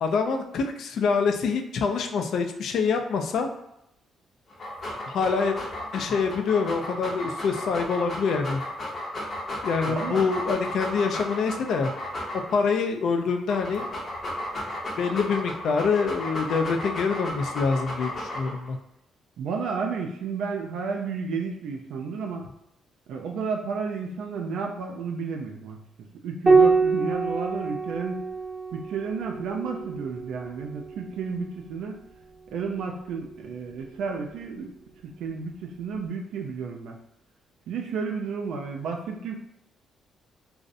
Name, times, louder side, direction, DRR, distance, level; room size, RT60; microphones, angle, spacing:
voice 1, 0.0-3.5 5.1-5.6 5.9-8.6 9.6-11.9 12.5-13.9 15.0-18.8, left 5 dB, 70° left, 5 dB, 0.3 m, -25 dB
Dog, 4.5-12.7 13.3-18.7, left 1 dB, 40° left, 0.7 m, -34 dB
voice 2, 9.9-10.3 19.4-22.5 23.1-25.8 26.2-28.3 28.7-32.0 32.5-34.7 35.0-37.0 37.7-39.4, right 5 dB, 80° right, 1 dB, 0.3 m, -32 dB
Piano, 26.5-31.3 32.9-33.8, right 4 dB, 15° right, 0.7 m, -25 dB
2.6 x 2.0 x 2.5 m, 0.81 s
cardioid pair, 90°, 0 cm